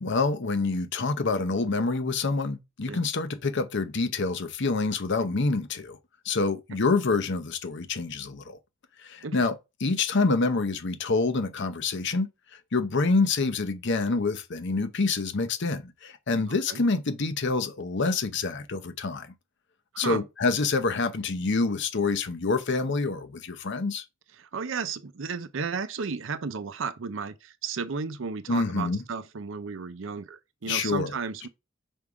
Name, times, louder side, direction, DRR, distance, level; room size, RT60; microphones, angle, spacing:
voice 1, 0.0-6.0 6.2-8.6 9.0-12.3 12.7-19.3 20.0-24.0 28.5-29.0 30.7-31.1, left 3 dB, 60° left, 0.8 m, -27 dB
voice 2, 24.4-31.5, right 5 dB, 70° right, 0.6 m, -33 dB
5.4 x 3.7 x 4.8 m
head